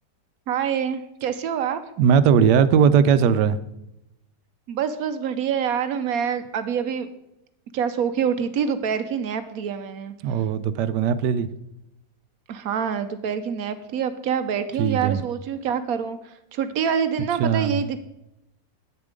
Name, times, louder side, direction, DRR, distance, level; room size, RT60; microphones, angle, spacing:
voice 1, 0.5-1.8 4.7-7.1 7.7-10.1 12.5-18.0, right 7 dB, 65° right, 1.0 m, -26 dB
voice 2, 2.0-3.6 10.2-11.5 14.8-15.2 17.4-17.8, right 7 dB, 85° right, 1.2 m, -19 dB
9.0 x 6.8 x 5.0 m
omnidirectional pair, 1.8 m